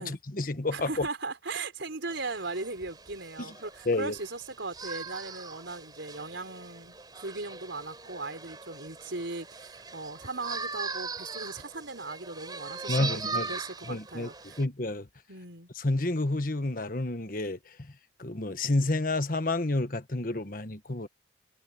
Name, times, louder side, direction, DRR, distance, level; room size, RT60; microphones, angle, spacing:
voice 1, 0.0-1.1 3.4-3.5 3.8-4.1 12.9-13.5 13.9-14.3 14.6-15.1 15.7-17.9 18.2-21.1, left 2 dB, 45° left, 1.3 m, -30 dB
voice 2, 0.7-14.6 15.3-15.7, right 3 dB, 75° right, 4.3 m, -38 dB
sound 1, 2.1-14.6, right 4 dB, 20° right, 3.9 m, -40 dB
head